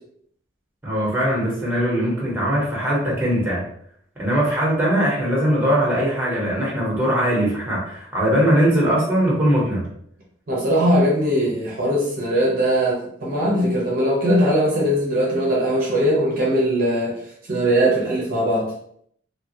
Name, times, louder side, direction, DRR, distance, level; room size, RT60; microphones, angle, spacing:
voice 1, 0.8-3.6 4.2-9.8, equal, 10° right, -5 dB, 0.9 m, -20 dB
voice 2, 10.5-18.7, equal, 45° right, -4 dB, 0.6 m, -20 dB
2.9 x 2.2 x 2.7 m, 0.67 s
head